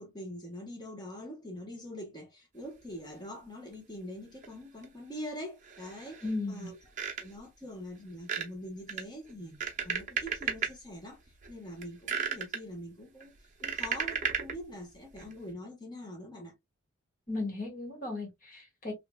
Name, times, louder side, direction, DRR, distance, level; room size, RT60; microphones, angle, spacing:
voice 1, 0.0-6.8 7.2-11.2 11.5-13.3 13.6-16.5, equal, 20° left, 1.2 m, -44 dB
sound 1, 4.4-4.5 4.8-4.9 5.6-6.4 6.7-7.5 8.2-8.5 8.9-10.7 11.3-11.5 11.8-12.6 13.2-14.6 15.2-15.3, right 6 dB, 35° right, 0.8 m, -34 dB
voice 2, 6.2-6.7 17.3-18.9, left 2 dB, 40° left, 1.7 m, -36 dB
3.2 x 2.9 x 2.2 m
head